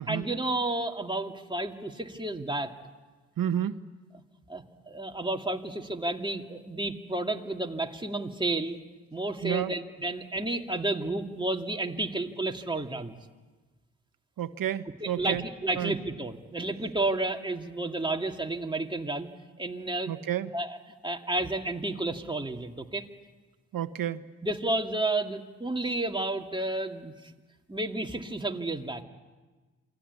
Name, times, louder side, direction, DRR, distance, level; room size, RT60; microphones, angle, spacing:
voice 1, 0.1-2.7 4.5-8.8 9.1-13.1 15.0-19.3 19.6-20.1 20.5-20.8 21.0-23.0 24.4-27.1 27.7-29.0, right 2 dB, 10° right, 3 dB, 2.4 m, -31 dB
voice 2, 3.4-3.8 9.4-9.7 14.4-15.4 15.8-15.9 20.1-20.5 23.7-24.2, right 10 dB, 55° right, 12 dB, 1.3 m, -30 dB
28.0 x 21.5 x 8.4 m, 1.3 s
hypercardioid pair, 50°, 41 cm